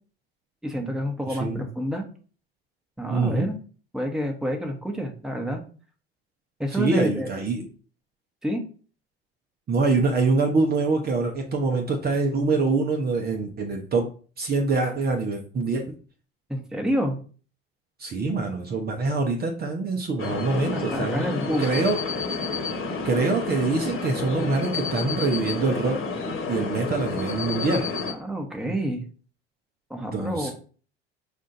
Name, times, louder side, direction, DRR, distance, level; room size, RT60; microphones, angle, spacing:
voice 1, 0.6-2.0 3.0-3.6 3.9-5.6 6.6-7.3 8.4-8.6 16.5-17.1 20.7-21.8 28.1-29.1 29.9-30.5, equal, ahead, 2 dB, 1.1 m, -28 dB
voice 2, 1.3-1.6 3.1-3.5 6.7-7.7 9.7-14.1 14.4-15.8 18.0-21.2 21.6-22.0 23.0-26.0 26.5-27.9 30.1-30.5, right 3 dB, 30° right, 3 dB, 0.8 m, -24 dB
sound 1, 20.2-28.1, left 4 dB, 40° left, 1.3 m, -30 dB
5.3 x 2.5 x 4.0 m, 0.40 s
hypercardioid pair, 70°, 31 cm